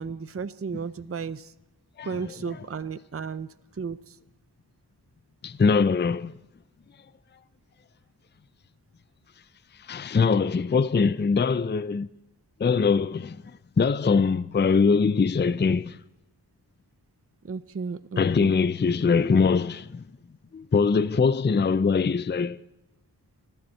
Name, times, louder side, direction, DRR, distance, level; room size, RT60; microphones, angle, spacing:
voice 1, 0.0-1.5 2.0-3.5 3.8-4.2 17.4-18.5, right 5 dB, 35° right, 0.6 m, -34 dB
voice 2, 2.0-2.3 5.4-6.3 9.9-12.1 12.6-13.4 13.8-16.0 18.2-20.0 20.5-22.6, left 5 dB, 25° left, 0.4 m, -22 dB
29.5 x 10.5 x 4.4 m
wide cardioid pair, 45°, 42 cm